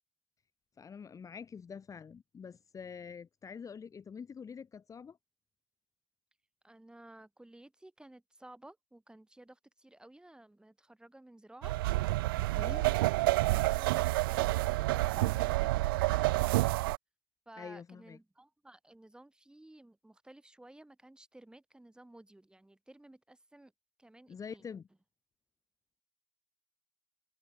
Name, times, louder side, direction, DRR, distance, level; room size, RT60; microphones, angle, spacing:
voice 1, 0.8-5.2 12.4-12.9 15.1-15.4 17.6-18.2 24.3-24.9, left 6 dB, 25° left, 1.9 m, -46 dB
voice 2, 6.6-11.8 13.7-14.5 17.5-23.7 24.0-24.6, right 1 dB, 5° right, 5.5 m, -55 dB
sound 1, 11.6-17.0, right 19 dB, 70° right, 0.6 m, -29 dB
hypercardioid pair, 75°, 12 cm